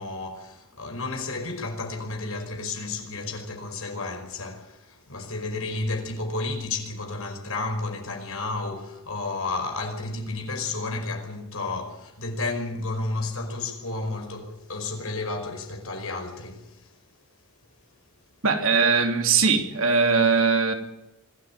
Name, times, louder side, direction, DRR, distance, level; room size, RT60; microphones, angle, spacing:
voice 1, 0.0-16.9, left 3 dB, 70° left, 5.1 m, -32 dB
voice 2, 18.4-20.7, right 5 dB, 65° right, 3.2 m, -20 dB
25.5 x 13.0 x 9.9 m
head